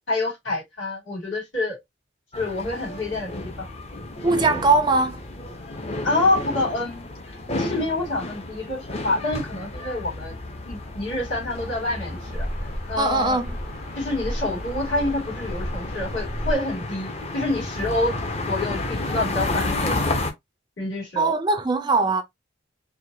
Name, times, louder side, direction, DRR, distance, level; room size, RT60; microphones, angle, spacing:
voice 1, 0.1-1.8 2.4-3.7 6.0-7.0 7.6-10.4 10.7-12.5 12.9-13.4 14.0-18.2 18.5-20.0 20.8-21.3, left 2 dB, 75° left, 2.7 m, -27 dB
sound 1, 2.3-20.3, left 2 dB, 30° left, 0.6 m, -32 dB
voice 2, 4.2-5.2 13.0-13.6 21.2-22.2, right 3 dB, 20° right, 0.4 m, -21 dB
sound 2, 11.6-16.5, equal, 45° left, 1.0 m, -33 dB
4.5 x 2.2 x 2.6 m
head